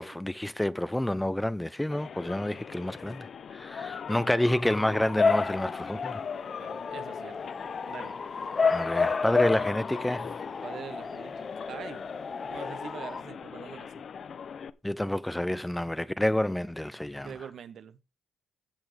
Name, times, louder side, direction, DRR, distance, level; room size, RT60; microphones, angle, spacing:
voice 1, 0.0-6.2 8.7-10.4 14.8-17.3, left 1 dB, 5° left, 0.6 m, -29 dB
sound 1, 1.9-14.7, left 7 dB, 55° left, 0.8 m, -40 dB
Bark / Motor vehicle (road) / Siren, 4.5-13.2, left 4 dB, 30° left, 1.0 m, -31 dB
voice 2, 6.6-7.5 7.9-8.2 10.6-12.0 12.5-14.0 17.2-18.0, right 7 dB, 60° right, 1.2 m, -44 dB
16.0 x 6.1 x 3.4 m
cardioid pair, 90°, 0 cm